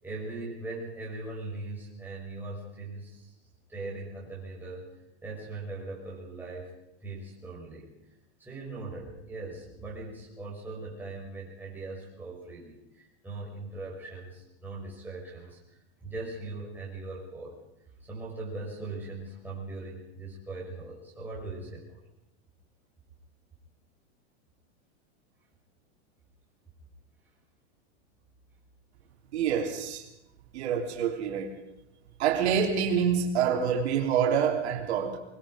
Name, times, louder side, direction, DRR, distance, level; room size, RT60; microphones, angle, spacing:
voice 1, 0.0-3.3 3.7-4.9 5.2-6.7 7.0-7.9 8.4-17.6 18.0-22.0, right 2 dB, 5° right, 6.2 m, -40 dB
voice 2, 29.3-30.1 30.5-31.6 32.2-35.2, right 7 dB, 70° right, 3.4 m, -26 dB
24.5 x 20.5 x 5.1 m
supercardioid pair, 160°, 34 cm